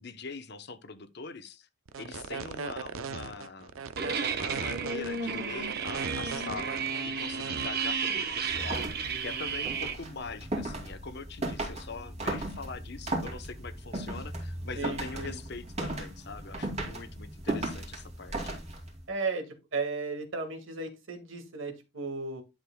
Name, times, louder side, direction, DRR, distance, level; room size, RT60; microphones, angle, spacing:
voice 1, 0.0-1.7 2.0-3.8 4.3-18.6, left 4 dB, 55° left, 0.9 m, -43 dB
sound 1, 1.9-7.7, right 5 dB, 85° right, 0.6 m, -38 dB
sound 2, 4.0-10.0, right 5 dB, 50° right, 1.2 m, -33 dB
sound 3, 8.5-19.0, right 1 dB, 30° right, 2.5 m, -36 dB
voice 2, 14.7-15.3 19.1-19.4 19.7-22.4, right 3 dB, 70° right, 2.0 m, -34 dB
11.5 x 6.7 x 2.3 m
head